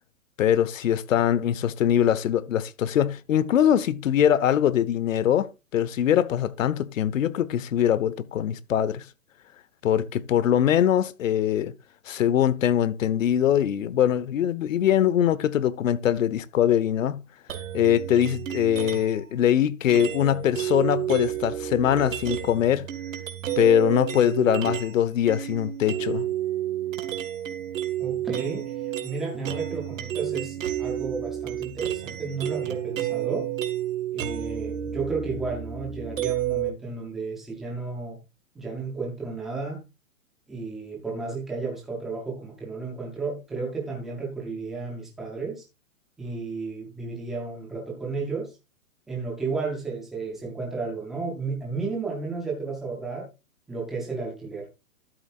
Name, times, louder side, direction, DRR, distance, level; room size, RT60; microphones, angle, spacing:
voice 1, 0.4-9.0 9.8-11.7 12.1-17.2 17.7-22.9 23.6-26.3, left 10 dB, 60° left, 1.1 m, -22 dB
sound 1, 17.5-19.2 19.9-25.0 25.3-36.7, right 11 dB, 60° right, 2.0 m, -31 dB
voice 2, 28.0-28.7 29.0-33.5 34.1-38.2 38.5-39.8 40.5-45.6 46.2-48.5 49.1-53.3 53.7-54.7, right 4 dB, ahead, 0.4 m, -33 dB
12.5 x 7.7 x 2.4 m
hypercardioid pair, 145°, 43 cm